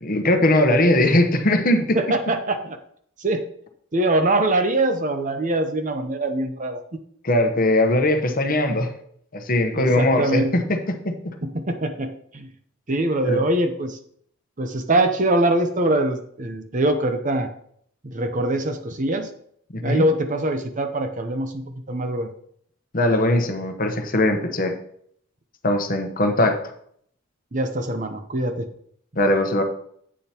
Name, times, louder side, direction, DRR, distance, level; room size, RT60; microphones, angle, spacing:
voice 1, 0.0-2.0 7.2-8.9 9.3-11.4 13.2-13.4 19.7-20.1 22.9-24.8 25.6-26.6 29.2-29.6, left 1 dB, 40° left, 6 dB, 1.0 m, -20 dB
voice 2, 1.9-2.8 3.2-3.5 3.9-6.8 9.8-10.5 11.4-12.5 12.9-14.0 14.6-17.5 18.0-19.3 19.8-22.3 27.5-28.7, right 1 dB, 35° right, 7 dB, 0.8 m, -23 dB
10.0 x 8.6 x 2.9 m, 0.65 s
head